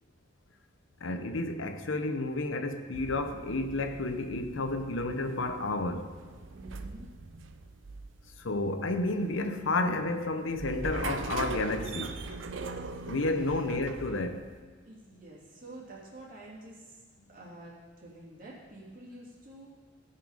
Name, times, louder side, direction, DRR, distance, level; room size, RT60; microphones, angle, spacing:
voice 1, 1.0-6.1 8.4-12.1 13.1-14.5, left 2 dB, 85° left, 8 dB, 0.8 m, -31 dB
sound 1, 2.9-14.6, right 3 dB, 75° right, 0.6 m, -41 dB
voice 2, 6.5-7.1 14.8-17.0 17.3-19.7, right 1 dB, 45° right, -5 dB, 2.9 m, -48 dB
16.5 x 5.9 x 5.0 m, 1.5 s
head